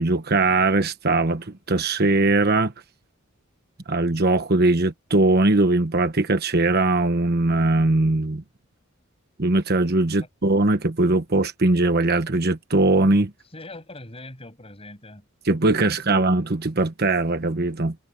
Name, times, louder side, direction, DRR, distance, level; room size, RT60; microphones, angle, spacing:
voice 1, 0.0-2.7 3.9-8.4 9.4-13.3 15.5-18.0, right 2 dB, 50° right, 1.2 m, -20 dB
voice 2, 13.5-15.3 15.8-16.3, left 2 dB, 30° left, 7.5 m, -42 dB
head